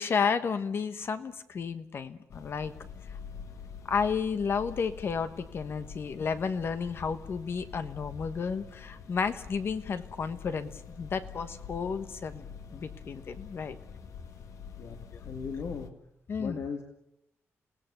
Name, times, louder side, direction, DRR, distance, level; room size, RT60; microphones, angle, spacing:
voice 1, 0.0-2.7 3.9-12.4 12.7-13.8 15.1-15.2 16.3-16.6, left 5 dB, 50° left, 11 dB, 1.3 m, -32 dB
sound 1, 2.3-15.9, left 7 dB, 85° left, 1.8 m, -46 dB
voice 2, 14.8-16.0 16.4-16.8, left 5 dB, 65° left, 4 dB, 2.1 m, -37 dB
29.0 x 18.0 x 6.9 m, 0.79 s
wide cardioid pair, 175°, 5 cm